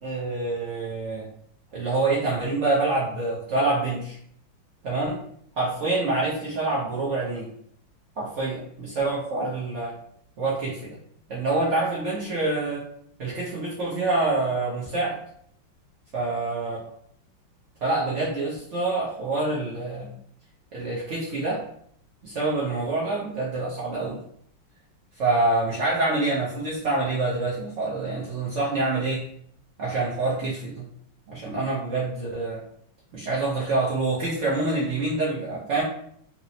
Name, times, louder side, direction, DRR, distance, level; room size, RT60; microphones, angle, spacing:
voice 1, 0.0-1.2 1.7-4.2 4.8-5.2 5.6-7.5 8.2-9.9 10.4-10.9 11.3-12.8 13.2-15.2 16.1-16.8 17.8-20.1 20.7-21.6 22.2-24.2 25.2-29.2 29.8-30.9 31.3-32.6 33.1-35.8, right 2 dB, 70° right, -6 dB, 0.6 m, -26 dB
4.1 x 2.0 x 2.7 m, 0.66 s
omnidirectional pair, 2.2 m